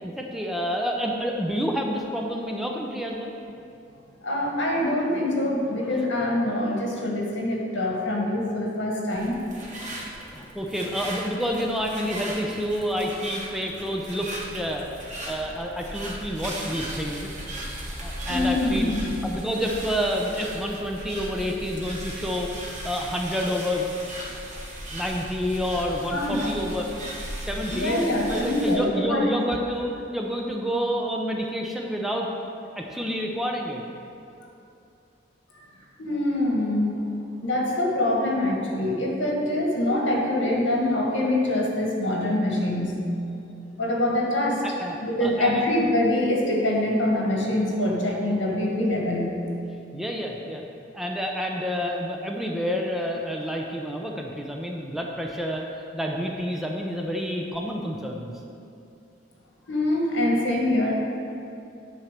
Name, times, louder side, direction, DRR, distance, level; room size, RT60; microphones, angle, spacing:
voice 1, 0.0-3.3 10.3-14.8 15.3-17.3 18.0-18.9 19.2-23.9 24.9-26.9 27.1-32.3 32.8-33.8 44.6-45.0 45.2-45.6 49.9-50.6 50.9-55.7 55.9-58.4, equal, ahead, 0 dB, 0.6 m, -29 dB
voice 2, 4.2-9.4 18.3-19.2 26.1-26.5 27.7-29.2 36.0-37.1 37.4-43.0 43.8-44.6 45.0-49.4 59.7-61.0, left 1 dB, 80° left, -2 dB, 1.7 m, -24 dB
sound 1, 9.1-28.8, right 1 dB, 40° right, 1.3 m, -37 dB
9.0 x 4.5 x 6.6 m, 2.6 s
head